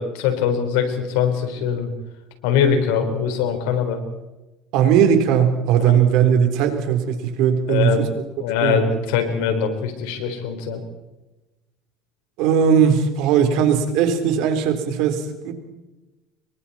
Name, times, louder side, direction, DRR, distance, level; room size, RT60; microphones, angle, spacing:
voice 1, 0.0-1.9 2.4-4.0 5.9-6.0 7.7-10.8, left 7 dB, 85° left, 6 dB, 4.3 m, -22 dB
voice 2, 4.7-8.1 8.6-8.8 12.4-15.5, right 8 dB, 70° right, 6 dB, 3.7 m, -18 dB
26.5 x 22.5 x 4.3 m, 1.1 s
cardioid pair, 130°, 0 cm